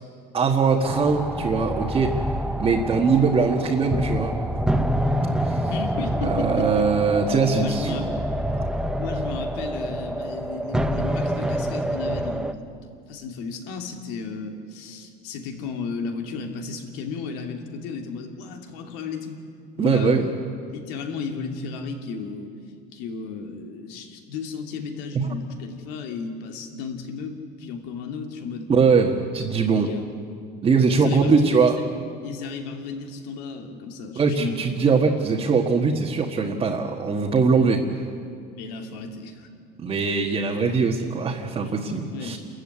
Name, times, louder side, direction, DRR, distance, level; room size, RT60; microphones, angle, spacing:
voice 1, 0.3-2.2 2.6-4.4 5.4-5.7 6.2-8.1 19.8-20.2 25.1-25.3 28.7-29.9 30.6-31.8 34.1-38.0 39.8-42.4, right 5 dB, 25° right, -1 dB, 1.5 m, -21 dB
sound 1, 0.8-12.5, equal, 5° right, 0.9 m, -27 dB
voice 2, 5.7-6.9 7.6-8.2 8.9-12.7 13.1-19.4 19.7-20.3 20.7-22.5 22.9-28.7 29.7-30.1 30.9-31.8 32.2-34.9 38.6-39.5 42.1-42.4, left 5 dB, 85° left, 4 dB, 2.9 m, -34 dB
28.5 x 14.5 x 9.8 m, 2.3 s
cardioid pair, 145°, 21 cm